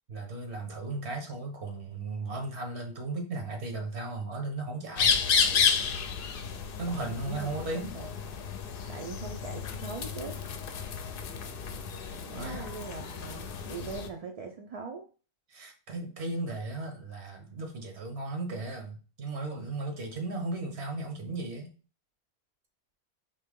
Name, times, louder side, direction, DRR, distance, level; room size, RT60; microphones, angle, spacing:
voice 1, 0.1-5.2 6.8-7.9 12.0-12.7 15.5-21.7, right 2 dB, 85° right, 1.3 m, -36 dB
sound 1, 5.0-14.1, left 6 dB, 65° left, 0.7 m, -31 dB
voice 2, 7.2-8.1 8.9-10.4 12.3-15.1, right 4 dB, 50° right, 0.4 m, -41 dB
4.5 x 2.8 x 3.6 m
omnidirectional pair, 1.1 m